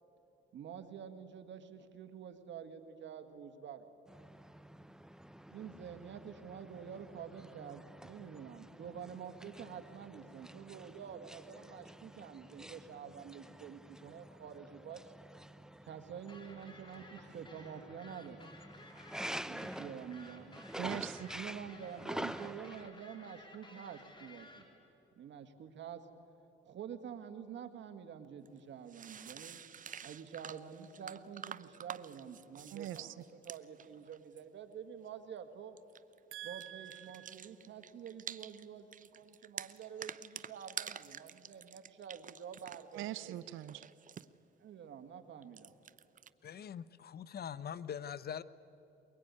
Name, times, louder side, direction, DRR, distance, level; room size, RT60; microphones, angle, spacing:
voice 1, 0.5-3.9 5.5-15.1 15.8-18.5 19.4-20.5 21.3-24.7 25.2-26.0 26.6-29.6 30.0-35.8 36.4-43.4 44.6-45.7, right 8 dB, 65° right, 1.8 m, -48 dB
sound 1, 4.1-22.9, right 1 dB, 5° right, 0.7 m, -48 dB
sound 2, 16.3-24.6, left 2 dB, 25° left, 3.7 m, -56 dB
voice 2, 20.8-21.3 32.7-33.1 36.3-37.3 42.9-43.9, right 13 dB, 85° right, 0.7 m, -43 dB
sound 3, 28.4-28.5 28.9-34.4 35.8-36.2 36.5-38.7 38.9-43.0 43.3-44.3 45.4-46.3, right 8 dB, 40° right, 0.6 m, -48 dB
voice 3, 46.4-48.4, left 8 dB, 50° left, 0.7 m, -43 dB
22.5 x 22.5 x 9.7 m
cardioid pair, 90°, 20 cm